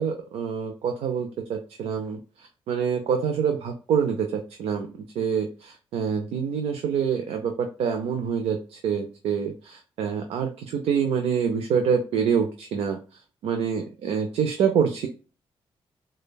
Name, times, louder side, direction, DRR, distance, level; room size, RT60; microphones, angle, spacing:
voice 1, 0.0-2.2 2.7-4.9 5.2-13.0 13.4-15.1, right 7 dB, 90° right, 5 dB, 0.5 m, -26 dB
5.0 x 2.2 x 2.2 m, 0.36 s
cardioid pair, 90°, 10 cm